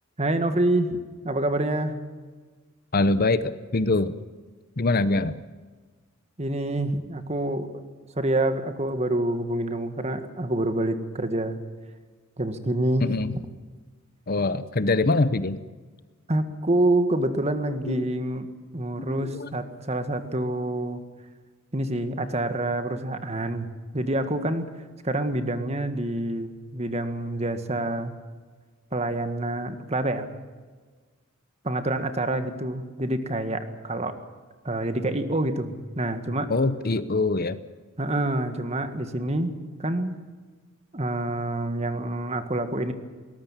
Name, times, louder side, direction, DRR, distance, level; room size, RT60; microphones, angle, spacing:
voice 1, 0.2-1.0 1.2-2.0 6.4-7.7 8.2-11.6 12.4-13.1 16.3-18.5 18.7-21.0 21.7-24.7 25.0-28.1 28.9-30.3 31.6-34.2 34.7-36.5 38.0-40.2 40.9-42.9, right 1 dB, 30° right, 9 dB, 1.8 m, -27 dB
voice 2, 2.9-4.1 4.8-5.4 13.0-13.3 14.3-15.6 17.8-18.1 19.3-19.5 36.5-37.6, left 2 dB, 45° left, 14 dB, 0.8 m, -23 dB
22.0 x 19.0 x 7.5 m, 1.4 s
head